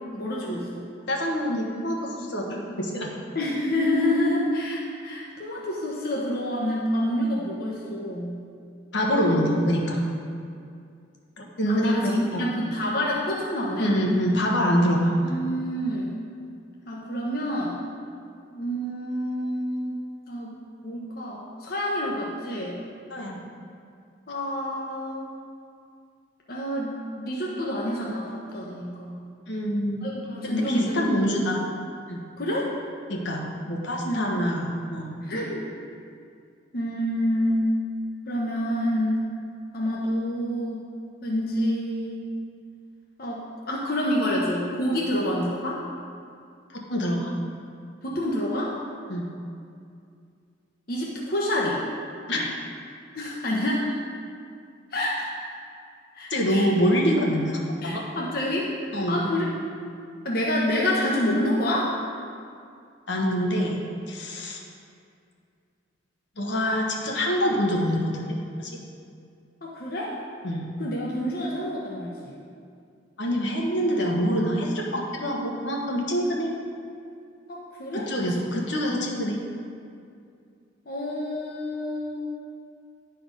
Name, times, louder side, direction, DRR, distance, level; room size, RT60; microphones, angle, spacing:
voice 1, 0.1-0.9 3.3-8.4 9.2-9.4 11.7-13.9 15.2-16.1 16.9-17.8 18.5-20.0 20.3-20.5 20.8-22.8 24.3-25.2 26.5-29.2 30.0-31.5 32.4-32.7 34.0-34.4 35.2-35.7 36.7-37.7 38.3-39.2 39.7-40.8 41.2-42.3 43.2-45.8 48.0-48.7 50.9-51.8 53.1-54.0 54.9-55.4 56.2-56.7 57.8-58.7 59.1-59.4 60.2-61.9 69.6-70.2 70.8-72.3 77.5-78.1 80.9-82.2, left 1 dB, 55° left, -4 dB, 1.0 m, -28 dB
voice 2, 1.1-3.1 8.9-10.0 11.4-12.4 13.8-15.1 23.1-23.4 29.5-30.1 30.4-31.6 32.1-32.2 33.1-35.1 46.7-47.3 49.1-49.3 52.3-52.5 56.3-58.0 58.9-59.3 63.1-63.8 64.1-64.6 66.4-68.7 70.4-70.7 73.2-76.5 77.9-79.4, equal, 70° left, -1 dB, 1.2 m, -25 dB
11.0 x 4.3 x 5.2 m, 2.3 s
head